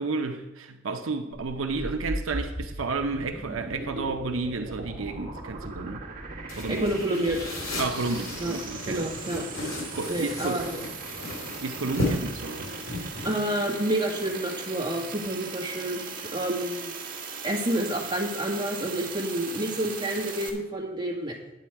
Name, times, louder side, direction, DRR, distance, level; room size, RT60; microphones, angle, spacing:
voice 1, 0.0-6.0 6.6-7.0 7.8-9.1 9.9-10.6 11.6-12.7, right 3 dB, 80° right, 0.7 m, -31 dB
sound 1, 1.3-20.5, right 3 dB, 40° right, 1.6 m, -38 dB
sound 2, 6.5-14.5, left 2 dB, 90° left, 2.9 m, -35 dB
voice 2, 6.7-7.4 8.4-8.6 8.9-9.4 10.1-10.7 13.2-16.9 17.4-21.4, right 1 dB, 20° right, 1.8 m, -29 dB
10.0 x 8.4 x 4.6 m
head